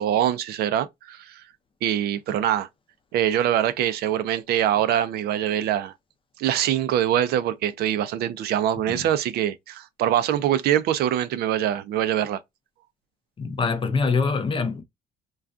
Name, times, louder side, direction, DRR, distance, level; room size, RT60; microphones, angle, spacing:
voice 1, 0.0-1.4 1.8-2.7 3.1-5.9 6.4-12.4, right 11 dB, 70° right, 0.4 m, -24 dB
voice 2, 13.4-14.8, left 4 dB, 30° left, 0.6 m, -24 dB
2.3 x 2.2 x 2.5 m
cardioid pair, 110°, 17 cm